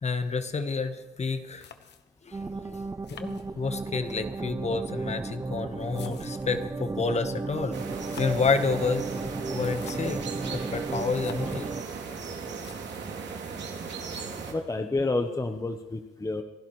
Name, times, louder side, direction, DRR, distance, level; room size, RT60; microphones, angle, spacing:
voice 1, 0.0-1.7 2.2-7.8 8.2-11.7, left 4 dB, 35° left, 9 dB, 1.3 m, -30 dB
sound 1, 1.6-2.3 3.0-4.0 4.9-6.6 7.8-8.6 9.5-10.3 11.0-11.7 12.2-12.3 12.5-13.1 14.1-14.6, left 8 dB, 60° left, 1.2 m, -50 dB
sound 2, 2.3-11.8, right 3 dB, 15° right, 0.5 m, -34 dB
sound 3, 7.7-14.5, right 5 dB, 60° right, 2.9 m, -37 dB
voice 2, 14.5-16.4, left 2 dB, 15° left, 6 dB, 1.0 m, -29 dB
28.5 x 11.5 x 3.2 m, 1.2 s
cardioid pair, 90°, 20 cm